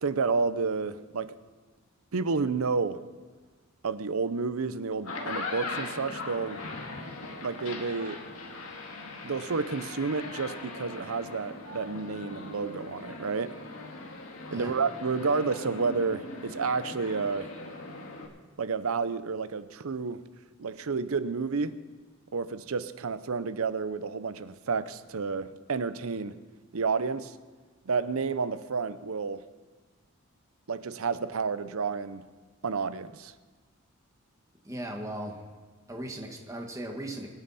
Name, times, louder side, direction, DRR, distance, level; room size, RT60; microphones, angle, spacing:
voice 1, 0.0-1.3 2.1-3.0 3.8-6.6 7.4-8.2 9.2-13.6 14.5-17.5 18.6-20.2 20.6-21.8 22.3-26.3 26.7-27.3 27.9-29.5 30.7-32.3 32.6-33.3, right 4 dB, 80° right, 14 dB, 0.7 m, -30 dB
sound 1, 4.9-18.3, left 3 dB, 85° left, 1.8 m, -40 dB
voice 2, 34.6-35.4 35.9-37.3, right 1 dB, 15° right, 1 dB, 1.6 m, -37 dB
24.5 x 9.1 x 4.2 m, 1.4 s
head